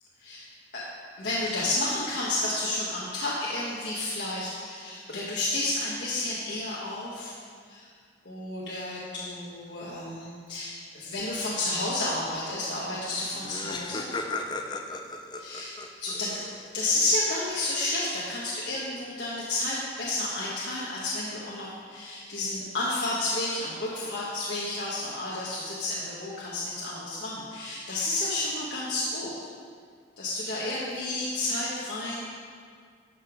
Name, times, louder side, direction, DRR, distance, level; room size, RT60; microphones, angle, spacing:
voice 1, 1.2-7.3 7.7-7.9 8.2-14.1 15.4-16.4 16.7-29.3 30.2-32.2, left 2 dB, 65° left, -7 dB, 1.4 m, -31 dB
Laughter, 12.9-13.0 13.2-16.8, left 3 dB, 25° left, 0.5 m, -36 dB
12.0 x 6.8 x 5.1 m, 2.1 s
head